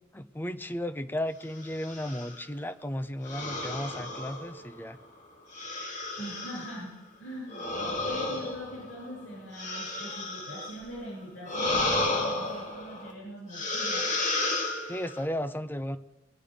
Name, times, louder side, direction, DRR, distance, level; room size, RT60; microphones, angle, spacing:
voice 1, 0.1-5.0 14.9-16.0, equal, 10° left, 10 dB, 0.6 m, -34 dB
sound 1, 1.7-2.4 3.3-4.9 5.5-6.8 7.5-10.9 11.4-13.1 13.5-15.2, left 2 dB, 40° left, 2.2 m, -32 dB
voice 2, 6.2-14.1, equal, 90° left, -3 dB, 6.7 m, -41 dB
22.0 x 11.5 x 5.1 m, 0.99 s
head